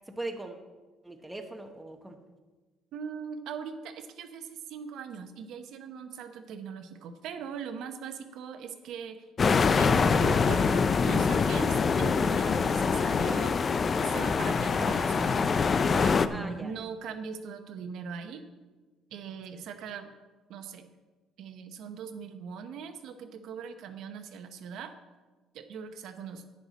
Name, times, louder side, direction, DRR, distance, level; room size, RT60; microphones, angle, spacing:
voice 1, 0.1-0.6 1.0-2.2 16.3-16.7, right 2 dB, 5° right, 4 dB, 0.9 m, -39 dB
voice 2, 2.9-9.2 9.8-13.5 14.0-15.4 15.9-18.4 19.1-20.1 20.5-20.9 21.4-24.9 25.5-26.4, right 6 dB, 65° right, 7 dB, 0.9 m, -40 dB
sound 1, 9.4-16.3, left 5 dB, 30° left, 0.4 m, -24 dB
10.5 x 9.7 x 4.1 m, 1.3 s
cardioid pair, 150°, 0 cm